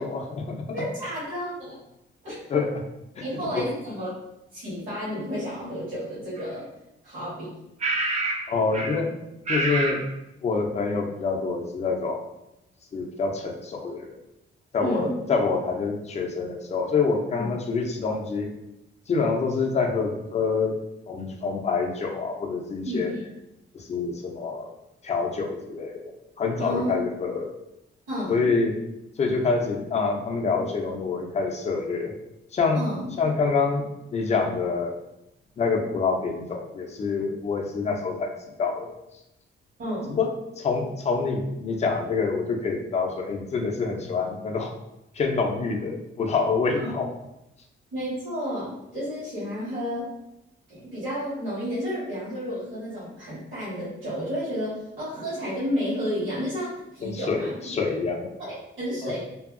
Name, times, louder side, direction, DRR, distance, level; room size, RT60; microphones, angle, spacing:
voice 1, 0.0-0.6 2.5-2.8 3.2-3.3 3.5-3.7 8.5-9.1 9.5-10.0 10.4-12.2 12.9-14.2 14.7-18.5 19.1-20.8 21.1-23.1 23.7-24.7 25.0-27.5 28.3-28.8 29.2-32.1 32.5-32.8 33.2-34.9 35.6-38.3 38.6-38.9 40.1-44.7 45.1-47.1 57.0-58.3 59.0-59.1, left 4 dB, 35° left, 2 dB, 0.4 m, -26 dB
voice 2, 0.7-1.8 2.2-2.4 3.2-4.1 4.5-6.7 7.0-7.5 14.8-15.1 17.4-17.5 22.8-23.0 26.6-27.0 28.1-28.5 32.7-33.1 39.8-40.2 46.8-46.9 47.9-50.1 50.7-57.5 58.4-59.2, equal, 70° right, -10 dB, 1.3 m, -31 dB
sound 1, 6.4-6.5 7.8-8.4 8.7-9.0 9.5-10.0, right 2 dB, 35° right, 0.4 m, -26 dB
2.7 x 2.6 x 2.5 m, 0.88 s
wide cardioid pair, 155°, 21 cm